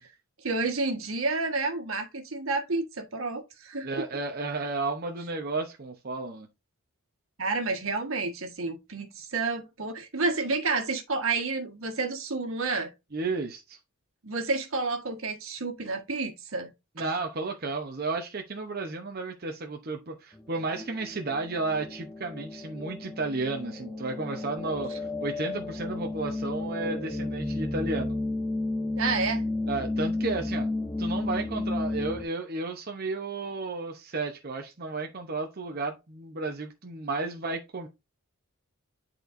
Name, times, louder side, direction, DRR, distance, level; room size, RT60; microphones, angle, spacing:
voice 1, 0.4-3.9 7.4-12.9 14.2-16.7 29.0-29.4, right 3 dB, 75° right, 1.6 m, -30 dB
voice 2, 3.8-6.5 13.1-13.8 17.0-28.1 29.7-30.7 31.0-37.9, right 3 dB, 45° right, 0.8 m, -33 dB
sound 1, 20.3-32.2, left 2 dB, 10° left, 1.0 m, -32 dB
11.0 x 4.3 x 2.6 m
head